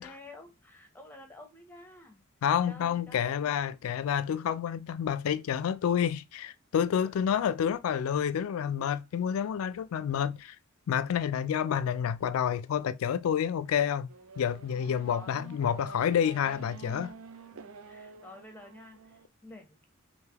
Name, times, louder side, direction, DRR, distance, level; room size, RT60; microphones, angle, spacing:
voice 1, 0.0-2.2 2.7-3.8 4.3-4.4 15.1-15.4 17.9-19.9, left 2 dB, 10° left, 0.8 m, -50 dB
voice 2, 2.4-10.6 10.9-14.1 14.4-17.1, left 8 dB, 75° left, 0.3 m, -29 dB
Race car auto racing / Accelerating revving vroom, 14.1-19.3, right 5 dB, 75° right, 0.5 m, -48 dB
3.2 x 2.7 x 3.4 m
head